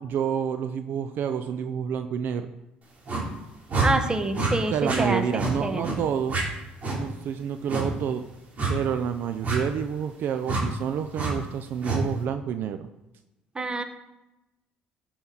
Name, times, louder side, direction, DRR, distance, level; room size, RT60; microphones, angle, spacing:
voice 1, 0.0-2.5 4.7-6.4 7.0-8.2 8.7-12.9, right 8 dB, 65° right, 9 dB, 0.6 m, -28 dB
sound 1, 3.1-3.3 3.7-3.9 4.3-4.5 4.8-5.0 5.4-5.5 5.8-6.0 6.3-6.4 6.8-7.0 7.7-7.9 8.6-8.8 9.4-9.6 10.4-10.6 11.1-11.3 11.8-12.0, right 3 dB, 45° right, 3.3 m, -26 dB
voice 2, 3.8-5.9 13.5-13.8, right 2 dB, 20° right, 8 dB, 1.2 m, -27 dB
12.5 x 6.0 x 4.0 m, 0.97 s
supercardioid pair, 75°, 4 cm